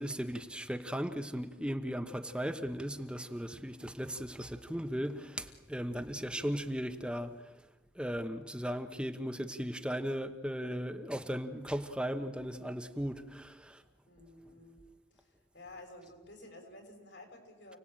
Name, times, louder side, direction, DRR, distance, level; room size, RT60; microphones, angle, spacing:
voice 1, 0.0-7.5 7.9-13.8, equal, 5° right, 1.1 m, -37 dB
voice 2, 6.0-6.3 14.0-14.8 15.1-17.8, left 2 dB, 85° left, 6.4 m, -53 dB
29.5 x 19.0 x 8.9 m
head